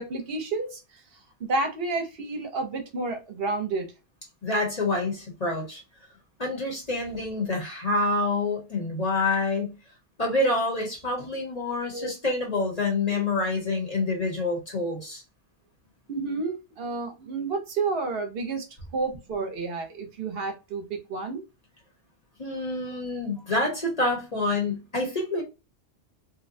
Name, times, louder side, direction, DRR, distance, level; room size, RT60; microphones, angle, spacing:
voice 1, 0.0-3.9 11.9-12.1 13.1-13.2 16.1-18.7 18.9-21.4 23.4-23.5, right 3 dB, 65° right, 0.8 m, -30 dB
voice 2, 4.4-5.8 6.4-9.7 10.2-15.2 22.4-25.4, left 2 dB, 35° left, 1.0 m, -27 dB
2.8 x 2.2 x 2.5 m
omnidirectional pair, 1.2 m